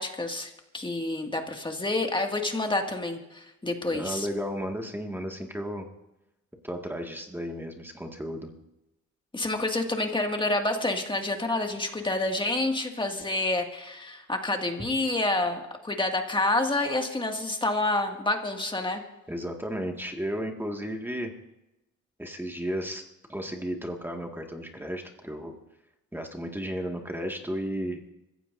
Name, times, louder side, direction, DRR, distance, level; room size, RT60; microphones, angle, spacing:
voice 1, 0.0-4.3 9.3-19.0, left 2 dB, 15° left, 3 dB, 2.2 m, -28 dB
voice 2, 3.9-5.9 6.6-8.5 19.3-21.3 22.2-23.0 23.3-25.5 26.1-28.0, equal, 5° right, 2 dB, 2.0 m, -33 dB
26.0 x 15.5 x 2.7 m, 0.93 s
cardioid pair, 90°, 30 cm